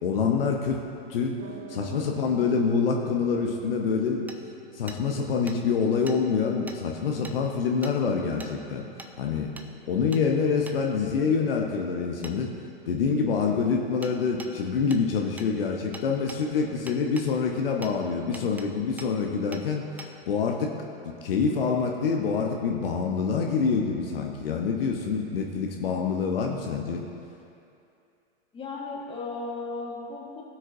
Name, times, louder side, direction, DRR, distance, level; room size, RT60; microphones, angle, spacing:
voice 1, 0.0-0.8 1.0-1.4 1.7-4.3 4.7-8.9 9.2-9.5 9.9-12.5 12.9-20.8 21.0-27.1, left 5 dB, 65° left, 1 dB, 1.0 m, -26 dB
Piano, 1.4-8.0, right 5 dB, 35° right, 1.0 m, -47 dB
Hammer, 4.3-4.4 4.9-5.0 5.5-5.6 6.1-6.2 6.7-6.8 7.2-7.4 7.8-8.0 8.4-8.5 9.0-9.1 9.6-9.7 10.1-10.2 10.7-10.8 12.2-12.4 14.0-14.1 14.4-14.5 14.9-15.0 15.4-15.5 15.9-16.4 16.9-17.3 17.8-17.9 18.3-18.7 19.0-19.1 19.5-19.6 20.0-20.1, right 2 dB, 5° right, 0.4 m, -43 dB
voice 2, 28.5-30.4, left 3 dB, 15° left, -2 dB, 1.7 m, -35 dB
18.0 x 6.2 x 2.7 m, 2.6 s
figure-of-eight pair, 95°, 31 cm